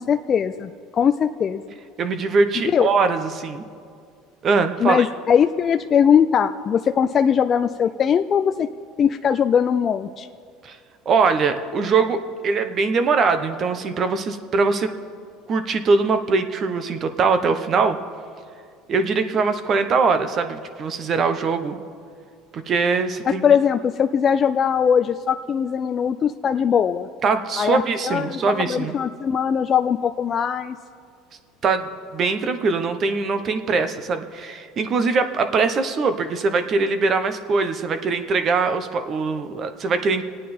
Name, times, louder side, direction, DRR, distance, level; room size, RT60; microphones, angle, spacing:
voice 1, 0.0-1.6 2.7-2.9 4.8-8.7 9.0-10.3 23.3-27.1 27.6-30.8, left 7 dB, 35° left, 8 dB, 0.4 m, -20 dB
voice 2, 2.0-3.6 4.4-5.1 10.6-10.8 11.1-14.9 15.5-18.0 18.9-21.8 22.5-23.4 27.2-28.9 31.6-40.3, right 4 dB, 40° right, 9 dB, 1.0 m, -22 dB
25.5 x 9.0 x 4.3 m, 2.2 s
supercardioid pair, 125°, 0 cm